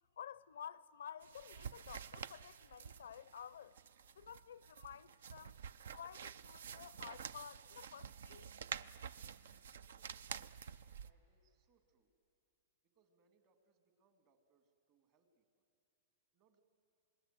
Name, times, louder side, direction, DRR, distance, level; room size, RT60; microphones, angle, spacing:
voice 1, 0.2-3.8 4.2-5.6 5.9-8.5, left 8 dB, 80° left, 0.5 m, -52 dB
sound 1, 1.2-11.1, right 7 dB, 75° right, 0.5 m, -49 dB
voice 2, 9.8-12.1 12.9-15.6 16.3-16.6, right 4 dB, 45° right, 2.7 m, -78 dB
26.5 x 20.0 x 7.9 m
hypercardioid pair, 130°, 0 cm